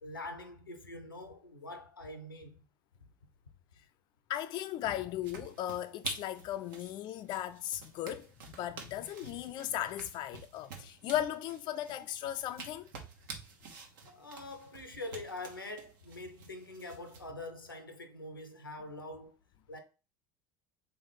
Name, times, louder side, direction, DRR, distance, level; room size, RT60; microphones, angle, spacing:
voice 1, 0.0-2.6 9.2-9.4 14.0-19.3 19.7-19.8, left 2 dB, 90° left, 0.6 m, -44 dB
voice 2, 4.3-8.3 8.5-12.9, left 12 dB, 40° left, 0.3 m, -37 dB
sound 1, 5.2-17.3, right 5 dB, 65° right, 0.9 m, -49 dB
3.6 x 3.3 x 3.9 m
figure-of-eight pair, 70°, 11 cm